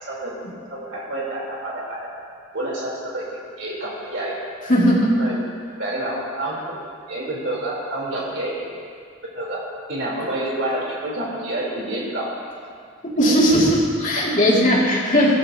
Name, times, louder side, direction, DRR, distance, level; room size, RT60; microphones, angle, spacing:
voice 1, 0.0-0.3 0.7-2.1 2.5-4.4 5.2-5.4 5.8-6.6 7.1-8.7 9.3-9.6 9.9-12.3 14.2-14.3, right 1 dB, 60° right, -4 dB, 3.7 m, -28 dB
voice 2, 4.7-5.1 13.0-15.4, equal, 35° left, -5 dB, 2.4 m, -17 dB
16.5 x 14.0 x 2.9 m, 2.2 s
head